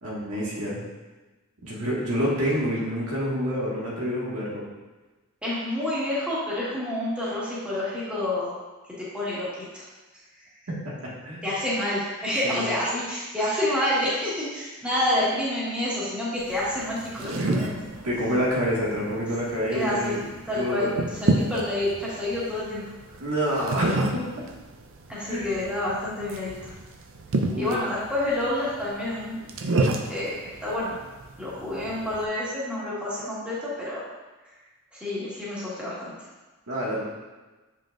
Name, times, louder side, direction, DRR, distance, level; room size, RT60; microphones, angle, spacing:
voice 1, 0.0-0.8 1.6-4.6 10.8-11.5 12.4-12.7 17.4-17.6 18.0-20.2 20.5-21.0 23.2-24.2 25.3-25.6 27.3-27.8 36.7-37.1, equal, 75° right, -6 dB, 1.8 m, -28 dB
voice 2, 5.4-8.5 9.0-9.8 11.4-18.0 19.7-20.2 20.4-22.8 25.1-26.7 27.6-29.4 30.1-31.0 31.4-34.0 34.9-36.1, left 1 dB, 5° right, -9 dB, 1.6 m, -28 dB
sound 1, 16.4-32.2, right 2 dB, 60° right, 0.5 m, -31 dB
7.3 x 5.6 x 2.5 m, 1.2 s
head